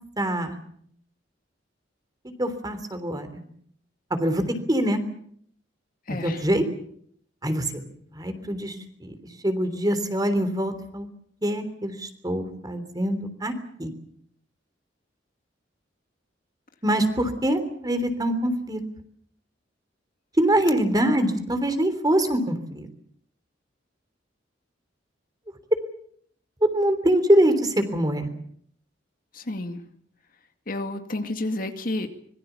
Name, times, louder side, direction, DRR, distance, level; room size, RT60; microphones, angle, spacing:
voice 1, 0.2-0.6 2.4-3.4 4.1-5.0 6.1-6.6 7.4-7.8 8.1-8.7 9.0-9.1 9.4-11.1 11.4-13.5 13.8-13.9 16.8-18.8 20.4-22.9 26.6-28.3, right 1 dB, 20° right, 9 dB, 3.3 m, -24 dB
voice 2, 6.1-6.4 29.3-29.8 30.7-32.2, left 2 dB, 50° left, 6 dB, 2.2 m, -30 dB
25.5 x 22.0 x 7.0 m, 0.64 s
head